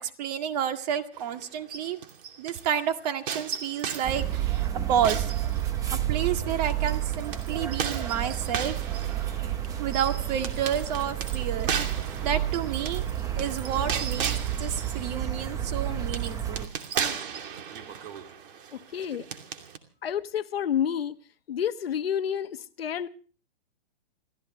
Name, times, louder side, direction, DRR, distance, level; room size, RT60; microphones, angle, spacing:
voice 1, 0.0-2.0 2.4-5.3 5.9-8.8 9.8-11.7 12.2-13.0 13.4-14.3 14.6-16.7, right 9 dB, 45° right, 1.9 m, -30 dB
sound 1, 1.1-2.7 3.3-6.1 6.7-19.8, right 7 dB, 60° right, 2.7 m, -36 dB
sound 2, 4.0-16.7, right 11 dB, 10° right, 0.8 m, -30 dB
voice 2, 18.7-19.3 20.0-21.2 21.5-23.1, left 9 dB, 80° left, 1.3 m, -29 dB
28.5 x 15.0 x 3.1 m
hypercardioid pair, 150°, 29 cm